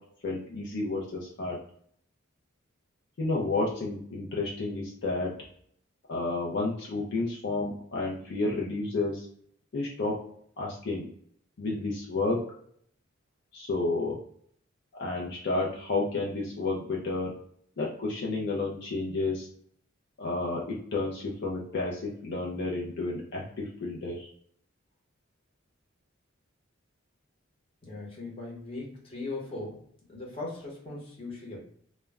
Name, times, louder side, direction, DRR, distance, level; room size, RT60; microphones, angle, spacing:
voice 1, 0.2-1.6 3.2-5.3 6.1-9.3 9.7-10.2 10.6-11.0 11.6-12.4 13.5-14.2 14.9-17.3 17.8-19.5 20.2-24.3, left 3 dB, 55° left, -3 dB, 0.4 m, -31 dB
voice 2, 27.8-31.6, left 2 dB, 30° left, -4 dB, 0.9 m, -39 dB
2.2 x 2.0 x 3.4 m, 0.63 s
head